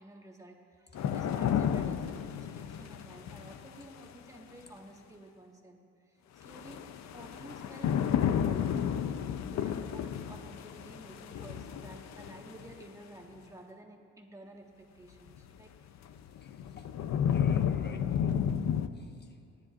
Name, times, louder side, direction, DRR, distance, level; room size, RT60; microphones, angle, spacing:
voice 1, 0.0-5.8 6.1-8.7 9.5-15.7, right 1 dB, 10° right, 1 dB, 1.6 m, -51 dB
sound 1, 0.9-4.1 6.4-12.7 15.4-15.5 16.1-18.9, left 8 dB, 65° left, 0.6 m, -32 dB
voice 2, 16.4-17.0 17.2-18.4 18.9-19.4, left 4 dB, 35° left, 3 dB, 1.4 m, -53 dB
29.5 x 10.5 x 2.5 m, 2.5 s
cardioid pair, 90°, 30 cm